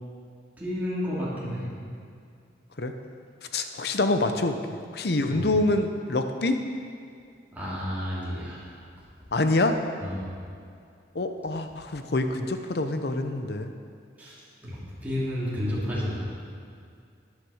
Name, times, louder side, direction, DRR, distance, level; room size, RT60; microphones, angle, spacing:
voice 1, 0.6-1.7 5.3-5.5 7.5-8.7 10.0-10.3 14.2-14.4 14.6-16.3, left 1 dB, 10° right, -9 dB, 2.9 m, -31 dB
voice 2, 3.5-4.6 4.9-6.6 9.3-9.8 11.1-13.7, left 2 dB, 60° left, 7 dB, 0.8 m, -26 dB
13.5 x 9.7 x 5.0 m, 2.3 s
head